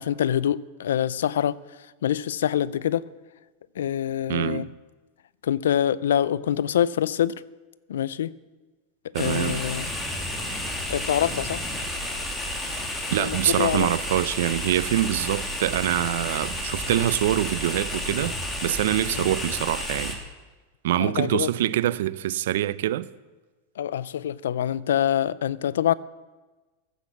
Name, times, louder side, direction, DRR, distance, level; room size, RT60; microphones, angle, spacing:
voice 1, 0.0-1.6 2.0-3.1 3.8-4.7 5.4-7.4 7.9-8.3 9.2-9.9 10.9-11.6 13.2-13.9 19.1-19.3 21.0-21.5 23.8-25.9, left 10 dB, 85° left, 0.4 m, -25 dB
voice 2, 4.3-4.7 9.1-9.6 13.1-18.3 18.6-20.2 20.8-23.0, right 13 dB, 75° right, 0.5 m, -25 dB
sound 1, 9.2-20.2, left 1 dB, 15° left, 2.4 m, -31 dB
14.0 x 8.1 x 7.1 m
hypercardioid pair, 120°, 0 cm